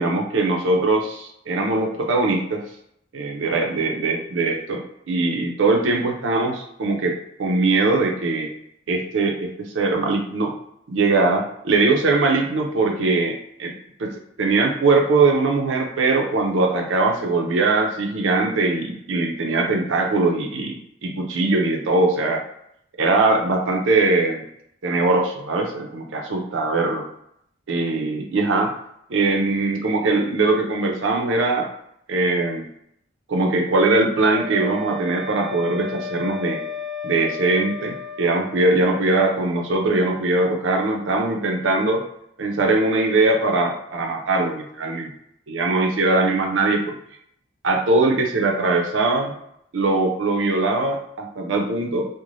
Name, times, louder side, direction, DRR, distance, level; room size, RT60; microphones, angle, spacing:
voice 1, 0.0-2.6 3.1-8.5 8.9-10.5 10.9-13.7 14.0-22.4 23.0-24.4 24.8-27.0 27.7-28.7 29.1-31.7 32.1-32.7 33.3-36.6 37.0-42.0 42.4-45.1 45.5-46.9 47.6-49.3 49.7-52.1, right 3 dB, 75° right, 2 dB, 0.5 m, -21 dB
Wind instrument woodwind instrument, 34.3-38.6, left 3 dB, ahead, 0.3 m, -33 dB
2.5 x 2.1 x 3.1 m, 0.72 s
head